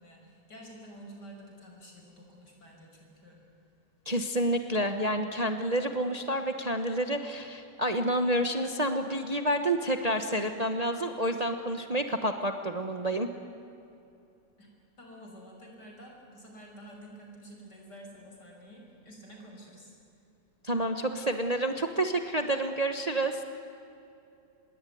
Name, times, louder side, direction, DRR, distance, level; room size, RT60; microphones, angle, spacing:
voice 1, 0.0-3.4 14.6-14.7 15.0-19.9, right 1 dB, 65° left, 1 dB, 6.2 m, -49 dB
voice 2, 4.0-13.3 20.6-23.4, right 1 dB, 25° right, 6 dB, 1.1 m, -29 dB
26.0 x 21.5 x 9.4 m, 2.7 s
omnidirectional pair, 1.9 m